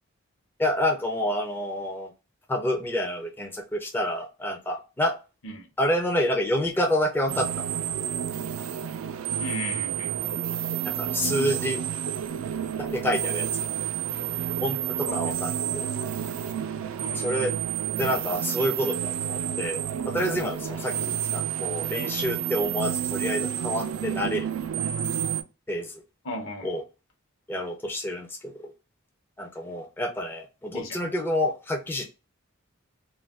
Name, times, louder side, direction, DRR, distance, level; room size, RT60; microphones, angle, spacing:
voice 1, 0.6-2.1 2.5-5.1 5.8-7.7 10.8-11.8 12.8-13.5 14.6-15.9 17.1-17.5 18.0-24.5 24.8-24.9 25.7-25.9 26.6-26.8 27.5-28.7 29.4-32.1, equal, 10° left, 0.3 m, -28 dB
sound 1, 7.3-25.4, right 9 dB, 75° right, 0.3 m, -30 dB
voice 2, 9.4-10.2 15.1-15.4 17.0-17.4 20.9-21.1 26.2-26.7 30.7-31.0, equal, 65° left, 0.8 m, -36 dB
2.4 x 2.2 x 3.4 m
head